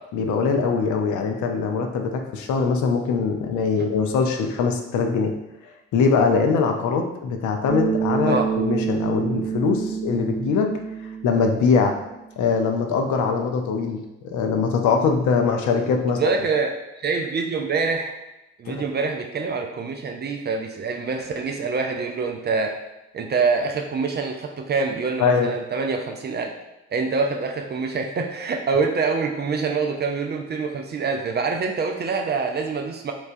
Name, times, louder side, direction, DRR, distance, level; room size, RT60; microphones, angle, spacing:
voice 1, 0.1-5.3 5.9-10.7 11.2-12.0 12.4-16.2 18.7-18.8 25.2-25.5, left 5 dB, 60° left, 4 dB, 0.5 m, -22 dB
Bass guitar, 7.7-12.1, right 7 dB, 80° right, 0.8 m, -27 dB
voice 2, 16.1-16.7 17.0-18.1 18.6-22.8 23.1-26.5 26.9-33.1, right 4 dB, 30° right, 3 dB, 0.4 m, -25 dB
3.1 x 2.2 x 2.5 m, 0.94 s
hypercardioid pair, 45°, 33 cm